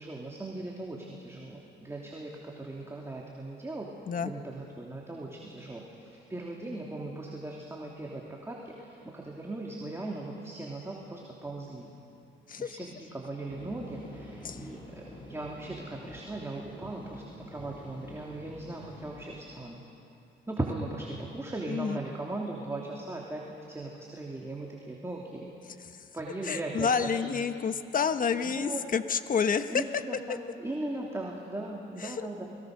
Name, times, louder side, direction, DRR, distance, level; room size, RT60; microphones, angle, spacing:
voice 1, 0.0-3.9 4.2-11.9 12.6-19.8 20.5-23.4 23.7-25.5 26.1-27.4 28.3-28.8 29.7-32.5, right 2 dB, 15° right, -2 dB, 3.1 m, -38 dB
sound 1, 13.5-19.6, left 1 dB, 25° left, 6.4 m, -48 dB
voice 2, 21.7-22.0 26.4-29.8 32.0-32.3, left 6 dB, 45° left, 10 dB, 1.2 m, -29 dB
28.5 x 22.0 x 6.7 m, 2.7 s
cardioid pair, 90°, 20 cm